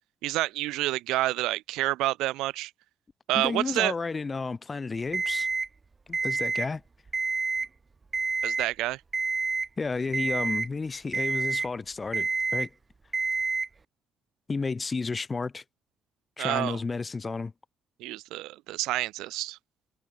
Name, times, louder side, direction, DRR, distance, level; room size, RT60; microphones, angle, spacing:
voice 1, 0.2-2.7 3.3-3.9 8.4-9.0 16.4-16.8 18.0-19.6, right 17 dB, 80° right, 0.5 m, -28 dB
voice 2, 3.3-5.5 6.1-6.8 9.8-12.7 14.5-15.6 16.4-17.5, left 4 dB, 30° left, 0.5 m, -32 dB
Alarm, 5.1-5.7 6.1-6.7 7.1-7.7 8.1-8.7 9.1-9.7 10.1-10.7 11.1-11.7 12.1-12.7 13.1-13.7, right 4 dB, 35° right, 0.9 m, -28 dB
supercardioid pair, 60°, 0 cm